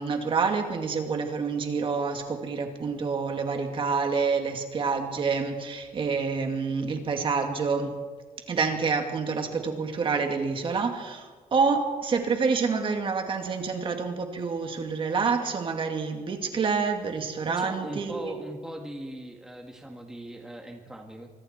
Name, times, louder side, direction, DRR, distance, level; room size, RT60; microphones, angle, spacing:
voice 1, 0.0-7.9 8.5-18.4, right 5 dB, 35° right, 4 dB, 2.3 m, -27 dB
voice 2, 17.5-21.3, right 1 dB, 5° right, 2 dB, 1.7 m, -39 dB
25.0 x 24.0 x 4.5 m, 1.4 s
cardioid pair, 170°, 14 cm